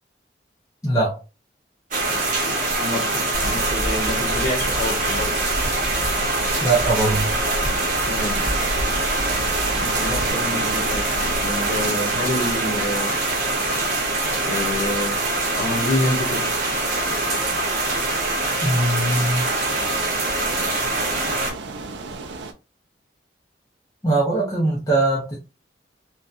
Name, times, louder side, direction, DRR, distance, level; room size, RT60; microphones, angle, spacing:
voice 1, 0.8-1.2 6.6-7.3 18.6-19.5 24.0-25.4, right 2 dB, 20° left, 0.5 m, -21 dB
sound 1, 1.9-21.5, right 2 dB, 45° right, 0.8 m, -24 dB
voice 2, 2.1-5.4 8.1-8.4 9.7-11.1 11.4-13.2 14.4-15.2 15.6-16.5, left 1 dB, 75° left, 0.8 m, -28 dB
sound 2, 2.8-22.5, right 4 dB, 70° right, 0.4 m, -36 dB
sound 3, 3.3-10.3, equal, 15° right, 1.3 m, -31 dB
2.7 x 2.2 x 2.4 m
head